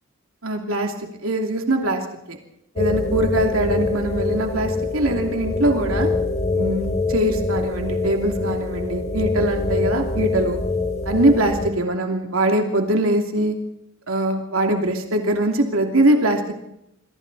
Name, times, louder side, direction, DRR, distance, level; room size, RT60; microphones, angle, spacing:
voice 1, 0.4-0.9 1.2-2.0 2.3-2.4 2.8-6.1 6.5-10.6 11.1-13.6 14.1-16.6, right 1 dB, 90° right, 3 dB, 2.8 m, -22 dB
sound 1, 2.8-11.7, left 3 dB, 35° left, 3.4 m, -24 dB
28.5 x 23.5 x 4.1 m, 0.83 s
head